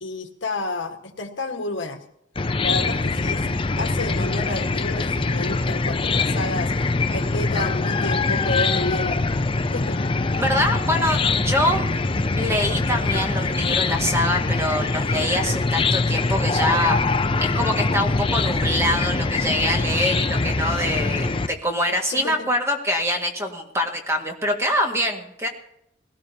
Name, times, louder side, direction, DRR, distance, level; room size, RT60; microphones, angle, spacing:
voice 1, 0.0-2.0 2.6-6.7 7.1-9.2 9.7-10.0 22.1-22.5, left 2 dB, 75° left, 5 dB, 1.6 m, -30 dB
Chicken rooster / Cricket, 2.4-21.5, left 3 dB, 25° left, 0.5 m, -23 dB
voice 2, 10.4-11.9 12.3-17.0 17.4-25.5, equal, 15° right, 2 dB, 1.9 m, -24 dB
20.0 x 17.5 x 2.9 m, 0.77 s
head